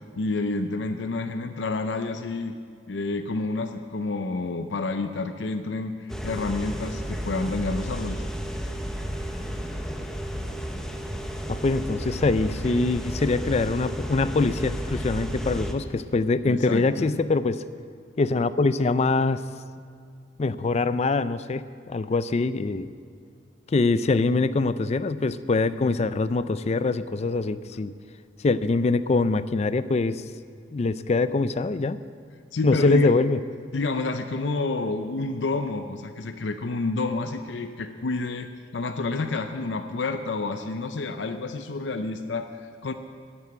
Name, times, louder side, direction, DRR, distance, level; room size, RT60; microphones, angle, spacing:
voice 1, 0.2-2.6 2.9-8.2 16.5-17.1 32.5-33.1 33.7-42.9, left 3 dB, 80° left, 7 dB, 0.6 m, -29 dB
sound 1, 6.1-15.7, equal, 5° left, 0.9 m, -32 dB
voice 2, 11.5-17.6 18.2-19.4 20.4-22.9 23.7-27.9 28.4-30.2 30.7-32.0 32.6-33.4, left 3 dB, 35° left, 14 dB, 0.4 m, -24 dB
10.5 x 9.7 x 8.8 m, 2.1 s
head